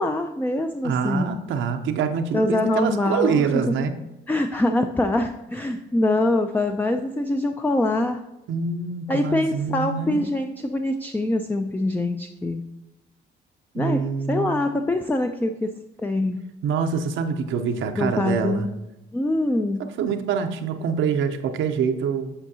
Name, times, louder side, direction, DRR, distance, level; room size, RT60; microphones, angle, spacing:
voice 1, 0.0-1.4 2.3-3.9 4.3-8.2 9.1-12.6 13.8-14.0 14.3-15.7 16.0-16.4 18.0-18.7 19.1-19.8, left 1 dB, 10° left, 6 dB, 0.4 m, -24 dB
voice 2, 0.8-3.9 8.5-10.3 13.7-14.6 16.6-18.7 20.0-22.3, right 6 dB, 75° right, 6 dB, 0.6 m, -25 dB
8.8 x 4.5 x 2.8 m, 0.95 s
cardioid pair, 90°, 20 cm